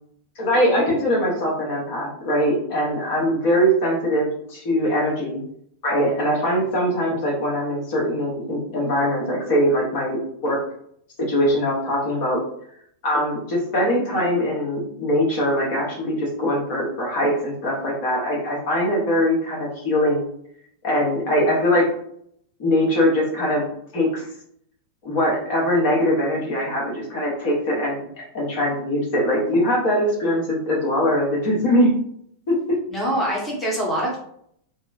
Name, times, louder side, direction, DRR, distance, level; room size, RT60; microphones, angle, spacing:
voice 1, 0.4-5.4 5.8-10.6 11.2-12.4 13.0-20.2 20.8-21.9 22.6-23.7 23.9-24.3 25.0-31.9 32.5-32.8, equal, 50° left, -3 dB, 1.1 m, -22 dB
voice 2, 32.9-34.2, right 1 dB, 10° left, -5 dB, 0.9 m, -24 dB
2.8 x 2.0 x 2.4 m, 0.67 s
figure-of-eight pair, 90°, 0 cm